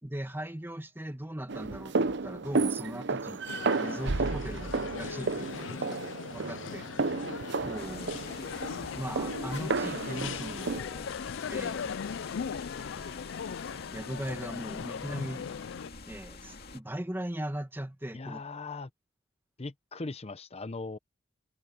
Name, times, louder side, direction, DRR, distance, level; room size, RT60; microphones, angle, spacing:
voice 1, 0.0-3.4 3.8-6.0 6.3-6.9 7.6-8.2 8.9-11.1 11.5-12.0 13.9-15.6 16.1-18.4, right 1 dB, 10° right, 1.2 m, -39 dB
sound 1, 1.5-10.8, right 3 dB, 65° right, 0.8 m, -32 dB
sound 2, 3.5-15.9, left 7 dB, 70° left, 0.4 m, -39 dB
sound 3, 7.8-16.8, left 4 dB, 55° left, 2.4 m, -46 dB
voice 2, 18.1-18.9 19.6-21.0, left 3 dB, 30° left, 0.8 m, -39 dB
head